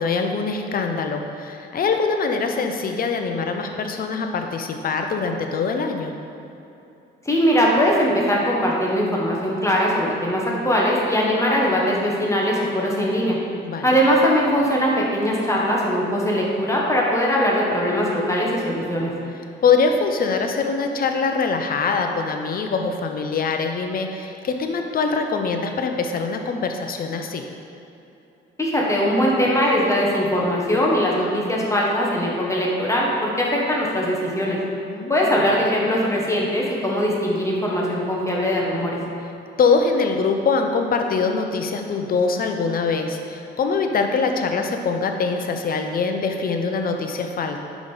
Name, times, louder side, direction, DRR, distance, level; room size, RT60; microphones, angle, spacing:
voice 1, 0.0-6.1 13.6-13.9 19.6-27.4 34.9-35.2 39.6-47.6, left 4 dB, 45° left, 4 dB, 0.7 m, -23 dB
voice 2, 7.2-13.4 13.8-19.1 28.6-34.6 35.1-39.0, equal, 15° left, -4 dB, 1.3 m, -21 dB
5.2 x 5.0 x 5.5 m, 2.8 s
cardioid pair, 90°, 20 cm